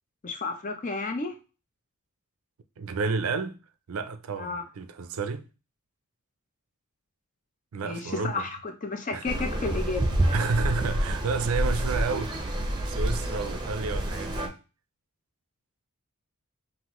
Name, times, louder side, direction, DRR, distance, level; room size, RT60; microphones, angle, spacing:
voice 1, 0.2-1.3 4.4-4.6 7.8-10.1, left 3 dB, 35° left, 0.6 m, -32 dB
voice 2, 2.8-3.6 3.9-5.5 7.7-8.5 9.1-9.3 10.3-12.4 12.9-14.5, right 4 dB, 70° right, 0.4 m, -30 dB
sound 1, 9.2-14.5, right 1 dB, 20° right, 0.6 m, -28 dB
5.6 x 2.6 x 3.0 m
head